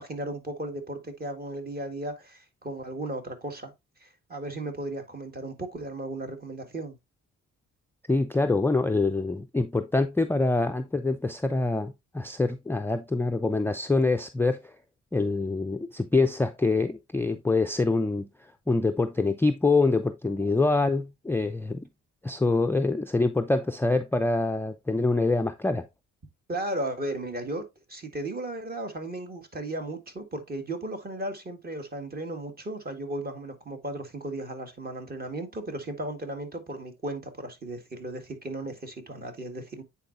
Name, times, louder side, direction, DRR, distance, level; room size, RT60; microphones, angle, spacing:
voice 1, 0.0-3.7 4.0-7.0 26.5-39.8, right 1 dB, 30° right, 1.8 m, -35 dB
voice 2, 8.1-14.6 15.1-18.3 18.7-21.9 22.2-25.9, left 3 dB, 5° left, 0.4 m, -25 dB
9.0 x 4.2 x 2.6 m
cardioid pair, 90°, 30 cm